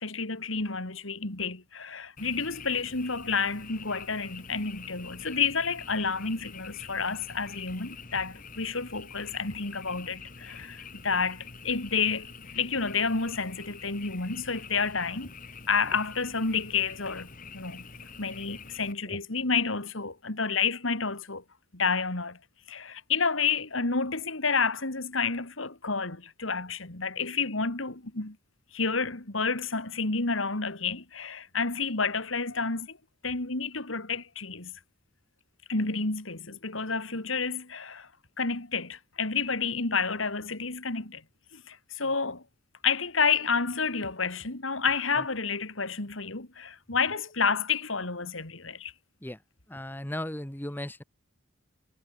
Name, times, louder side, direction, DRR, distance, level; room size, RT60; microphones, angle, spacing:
voice 1, 0.0-15.3 15.7-17.3 17.5-17.8 18.2-21.4 21.7-22.4 22.7-28.4 28.7-33.0 33.2-34.7 35.7-38.1 38.4-41.2 41.5-42.4 42.8-48.9, left 5 dB, 85° left, 2.9 m, -30 dB
Frog, 2.2-18.9, left 5 dB, 45° left, 3.3 m, -46 dB
voice 2, 49.7-51.0, left 1 dB, 10° left, 1.3 m, -36 dB
head